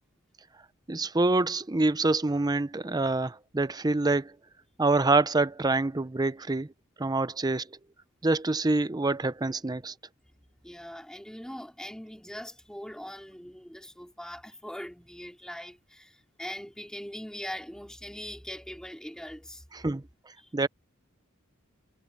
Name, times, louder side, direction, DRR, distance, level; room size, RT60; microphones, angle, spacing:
voice 1, 0.9-4.3 4.8-6.7 7.0-7.7 8.2-9.9 19.8-20.0 20.5-20.7, right 2 dB, 20° right, 0.6 m, -26 dB
voice 2, 10.6-19.7 20.4-20.5, equal, 5° left, 3.1 m, -41 dB
head